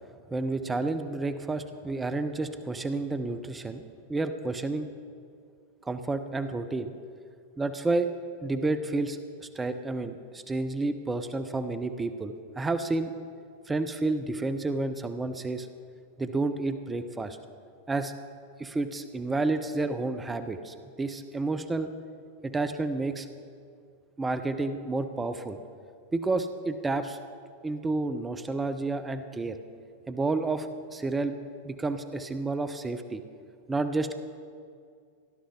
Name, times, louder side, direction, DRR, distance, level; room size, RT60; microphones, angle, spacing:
voice 1, 0.3-3.8 4.1-4.9 5.8-6.9 7.6-8.1 8.4-13.1 13.7-15.7 16.2-17.4 17.9-18.1 18.6-21.9 22.4-23.3 24.2-25.6 26.1-27.2 27.6-29.6 30.1-31.4 31.6-33.2 33.7-34.2, right 3 dB, 15° right, 10 dB, 0.6 m, -30 dB
18.0 x 11.5 x 3.7 m, 2.3 s
figure-of-eight pair, 90°, 0 cm